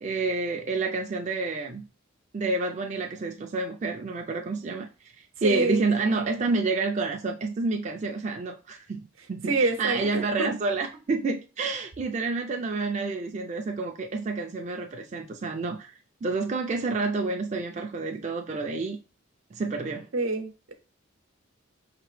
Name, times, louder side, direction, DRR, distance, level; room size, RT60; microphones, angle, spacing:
voice 1, 0.0-1.8 2.3-9.0 9.3-15.9 16.2-19.0 19.5-20.1, right 3 dB, 35° right, 0.3 m, -29 dB
voice 2, 5.4-5.9 9.5-10.5 20.1-20.7, right 2 dB, 80° right, 0.8 m, -27 dB
5.2 x 2.9 x 3.1 m
head